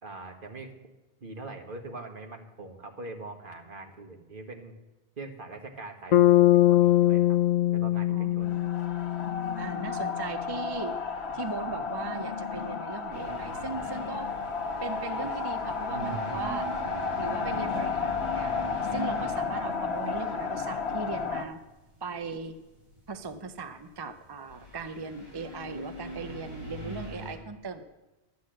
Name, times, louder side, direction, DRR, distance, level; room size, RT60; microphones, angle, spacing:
voice 1, 0.0-0.7 1.2-4.7 5.2-7.4 7.7-8.6, right 2 dB, 50° right, 4 dB, 1.5 m, -43 dB
Bass guitar, 6.1-10.2, left 14 dB, 50° left, 0.5 m, -22 dB
voice 2, 8.1-8.7 9.6-11.0 11.3-14.3 14.8-16.7 17.2-21.6 22.0-22.6 23.1-27.8, right 4 dB, 30° right, 9 dB, 0.5 m, -38 dB
sound 1, 8.4-21.4, left 4 dB, 75° left, 1.2 m, -33 dB
sound 2, 13.1-24.1 24.5-27.3, equal, 75° right, 5.2 m, -41 dB
12.0 x 9.3 x 7.6 m, 1.1 s
omnidirectional pair, 1.1 m